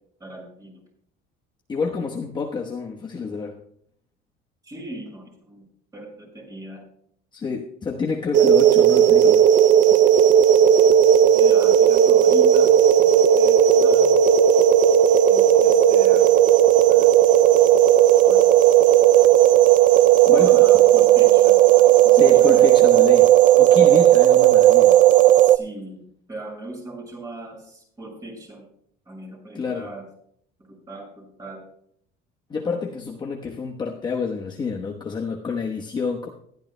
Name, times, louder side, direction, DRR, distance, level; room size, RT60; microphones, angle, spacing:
voice 1, 0.2-0.8 4.6-5.7 5.9-6.8 11.3-12.7 13.1-14.2 15.3-16.2 16.8-17.1 18.2-18.4 20.3-22.6 25.4-26.0 26.3-28.7 29.1-30.0 30.6-31.6, right 2 dB, 15° right, -1 dB, 6.3 m, -38 dB
voice 2, 1.7-3.6 7.3-9.5 20.3-20.6 22.1-25.0 29.5-29.9 32.5-36.3, left 5 dB, 20° left, 0 dB, 1.1 m, -28 dB
sound 1, 8.3-25.6, right 11 dB, 40° right, 0.4 m, -14 dB
20.0 x 13.0 x 2.2 m, 0.66 s
cardioid pair, 155°, 20 cm